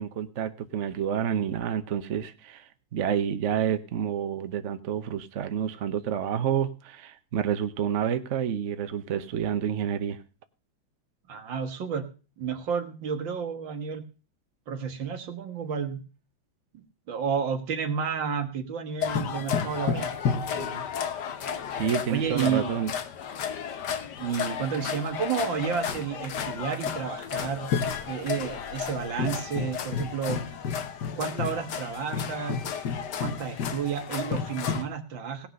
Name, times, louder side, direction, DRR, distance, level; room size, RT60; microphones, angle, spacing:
voice 1, 0.0-10.2 21.7-22.9, right 9 dB, 50° right, 10 dB, 0.9 m, -29 dB
voice 2, 11.3-12.1 12.4-14.0 14.7-16.0 16.7-20.1 20.5-20.9 22.1-22.8 24.2-27.7 28.1-30.4 31.2-32.6 33.2-35.5, right 7 dB, 70° right, 6 dB, 2.1 m, -31 dB
sound 1, 19.0-34.8, left 7 dB, 60° left, 1.6 m, -32 dB
17.5 x 5.9 x 6.4 m, 0.36 s
omnidirectional pair, 2.2 m